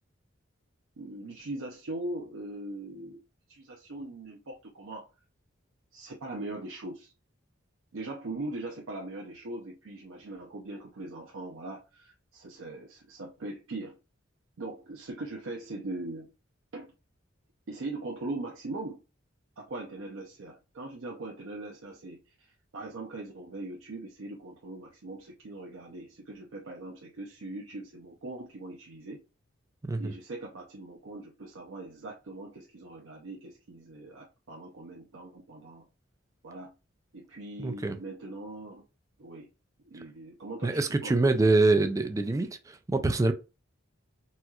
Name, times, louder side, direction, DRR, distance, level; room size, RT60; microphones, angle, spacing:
voice 1, 1.0-3.2 3.5-5.1 5.9-7.1 7.9-14.0 14.6-16.3 16.7-16.9 17.7-19.0 19.6-29.2 30.0-35.9 36.4-36.7 37.1-38.8 39.2-39.5 39.9-41.3, right 2 dB, 85° right, 0.6 m, -40 dB
voice 2, 37.6-38.0 40.6-43.3, right 2 dB, 15° right, 0.3 m, -25 dB
4.2 x 2.3 x 2.3 m
head